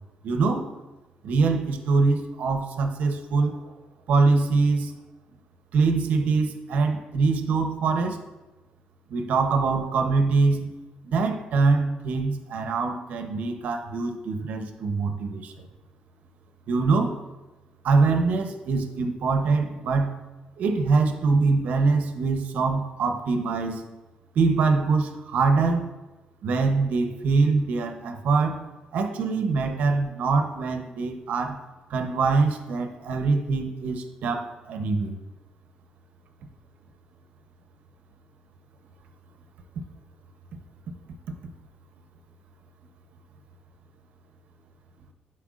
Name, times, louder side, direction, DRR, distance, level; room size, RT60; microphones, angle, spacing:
voice 1, 0.2-0.7 1.2-3.6 4.1-4.9 5.7-8.2 9.1-10.7 11.0-15.7 16.7-17.2 17.8-20.2 20.6-23.8 24.3-25.9 26.4-28.6 28.9-31.6 31.9-35.2, right 4 dB, 70° right, 6 dB, 0.8 m, -23 dB
11.0 x 4.5 x 2.5 m, 1.1 s
cardioid pair, 135°, 3 cm